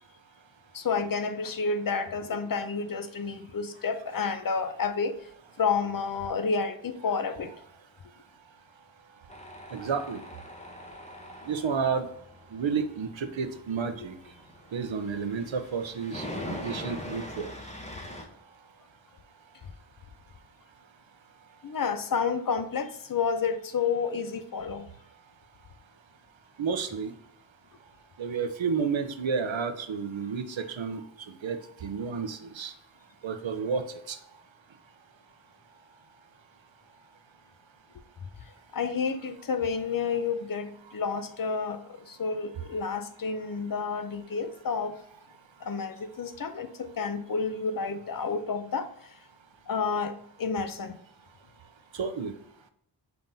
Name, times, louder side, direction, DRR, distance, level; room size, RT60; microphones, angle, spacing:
voice 1, 0.7-5.1 5.6-7.5 21.6-24.9 38.7-41.8 42.1-45.0 45.6-48.9 49.7-51.0, left 5 dB, 50° left, 10 dB, 0.6 m, -30 dB
Tools, 9.3-18.2, left 1 dB, 15° left, 0.8 m, -42 dB
voice 2, 9.7-10.2 11.5-12.1 12.5-14.1 14.7-17.5 26.6-27.1 28.2-32.7 33.2-34.2 51.9-52.3, right 5 dB, 80° right, 9 dB, 0.7 m, -31 dB
5.4 x 3.5 x 2.7 m, 0.72 s
wide cardioid pair, 60°, 45 cm